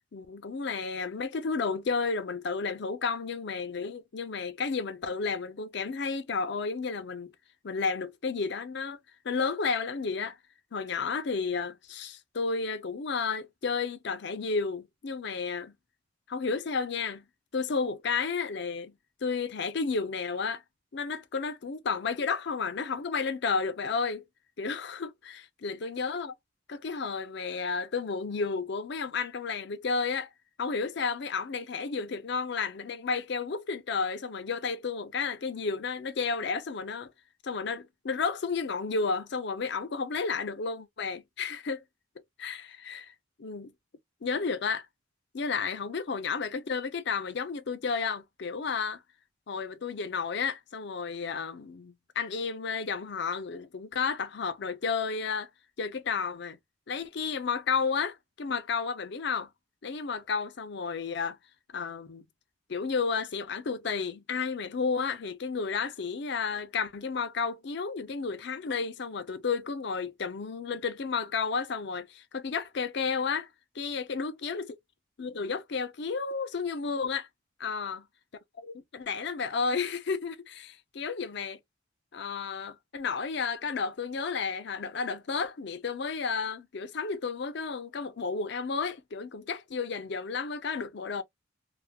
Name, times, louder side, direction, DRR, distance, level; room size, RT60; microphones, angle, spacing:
voice 1, 0.1-7.3 7.6-9.0 9.2-10.4 10.7-15.7 16.3-17.3 17.5-18.9 19.2-20.6 20.9-24.2 24.6-26.3 26.7-30.3 30.6-37.1 37.4-41.8 42.4-43.7 44.2-44.9 45.3-49.0 49.5-55.5 55.8-56.6 56.9-59.5 59.8-61.4 61.7-62.2 62.7-73.5 73.7-74.7 75.2-77.3 77.6-78.0 78.7-81.6 82.1-91.2, left 5 dB, 65° left, 0.5 m, -32 dB
3.4 x 2.2 x 2.2 m
head